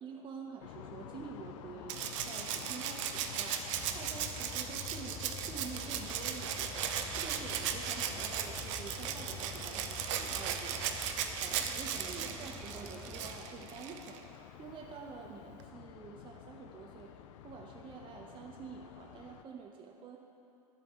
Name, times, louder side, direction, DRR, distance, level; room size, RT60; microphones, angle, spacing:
voice 1, 0.0-6.8 7.1-17.1 17.4-20.2, right 5 dB, 25° right, 1 dB, 0.8 m, -48 dB
sound 1, 0.6-19.4, left 11 dB, 55° left, 0.5 m, -51 dB
Rattle (instrument), 1.9-14.2 15.6-15.7, right 9 dB, 55° right, 0.7 m, -37 dB
sound 2, 3.7-13.4, left 2 dB, ahead, 1.0 m, -48 dB
11.0 x 7.9 x 4.4 m, 2.7 s
figure-of-eight pair, 85°, 19 cm